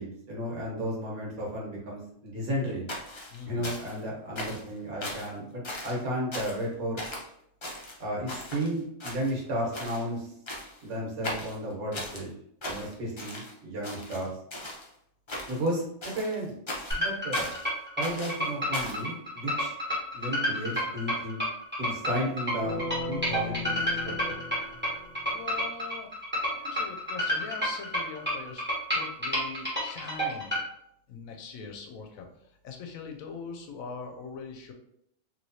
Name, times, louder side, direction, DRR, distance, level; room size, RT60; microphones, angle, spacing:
voice 1, 0.0-2.9 3.4-7.0 8.0-10.3 10.8-12.3 12.7-14.3 15.5-15.8 16.1-16.5 17.0-17.5 18.0-19.7 20.1-21.4 21.8-22.8 23.1-24.3, equal, 75° right, -3 dB, 1.5 m, -33 dB
sound 1, 2.9-4.0 4.4-4.7 5.0-5.3 5.6-6.0 6.3-6.7 7.0-7.3 7.6-8.7 9.0-9.5 9.7-10.0 10.5-10.8 11.2-12.2 12.6-13.5 13.8-14.9 15.3-15.7 16.0-17.7 18.0-19.0, left 1 dB, 50° left, 0.3 m, -38 dB
voice 2, 3.3-3.7 25.3-26.1 26.5-30.6 31.1-32.3 32.6-34.7, left 5 dB, 75° left, 3 dB, 0.9 m, -42 dB
sound 2, 16.9-30.6, equal, 10° right, 0.9 m, -29 dB
sound 3, 22.6-25.6, left 2 dB, 50° right, 0.8 m, -37 dB
3.1 x 2.9 x 2.7 m, 0.73 s
omnidirectional pair, 1.5 m